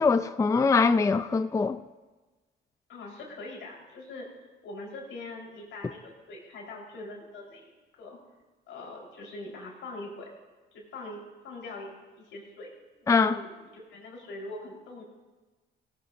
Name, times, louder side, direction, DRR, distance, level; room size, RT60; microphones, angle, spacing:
voice 1, 0.0-1.8 13.1-13.4, left 4 dB, 15° left, 0.4 m, -23 dB
voice 2, 2.9-4.3 4.6-8.2 8.7-10.3 10.7-12.7 13.0-15.0, left 2 dB, 85° left, 4.3 m, -42 dB
17.0 x 17.0 x 2.7 m
cardioid pair, 90°, 20 cm